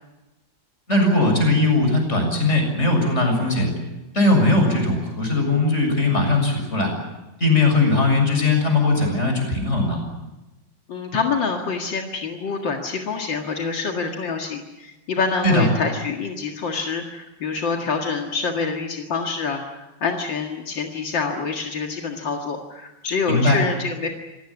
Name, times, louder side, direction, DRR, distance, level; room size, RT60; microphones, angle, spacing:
voice 1, 0.9-3.7 4.1-6.9 7.4-10.0 15.4-15.7 23.3-23.6, left 2 dB, 35° left, 3 dB, 7.5 m, -19 dB
voice 2, 10.9-24.1, left 4 dB, 80° left, 2 dB, 2.7 m, -26 dB
27.5 x 17.0 x 10.0 m, 1.0 s
omnidirectional pair, 2.0 m